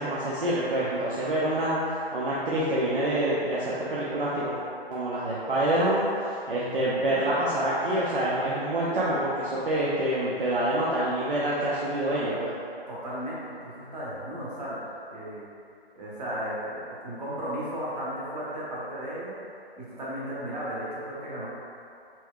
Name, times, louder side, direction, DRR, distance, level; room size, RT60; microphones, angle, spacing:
voice 1, 0.0-1.8 2.1-4.5 4.9-12.5, right 1 dB, 60° right, -8 dB, 0.8 m, -26 dB
voice 2, 6.7-7.2 12.9-14.8 15.1-15.4 15.9-19.5 19.8-21.5, equal, 40° right, -7 dB, 1.3 m, -35 dB
4.5 x 4.4 x 2.3 m, 2.5 s
figure-of-eight pair, 145°, 31 cm